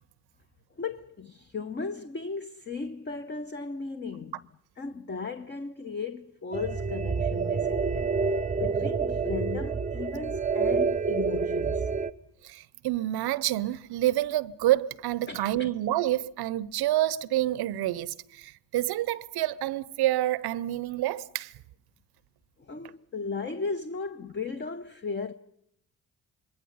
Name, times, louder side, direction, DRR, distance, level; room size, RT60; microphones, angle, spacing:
voice 1, 0.8-4.4 4.8-8.2 8.5-11.9 15.3-15.7 22.6-25.3, left 4 dB, 25° left, 0.9 m, -36 dB
sound 1, 6.5-12.1, right 5 dB, 15° right, 0.9 m, -28 dB
voice 2, 12.4-21.5, right 14 dB, 60° right, 0.8 m, -28 dB
26.5 x 22.0 x 5.6 m
hypercardioid pair, 45°, 44 cm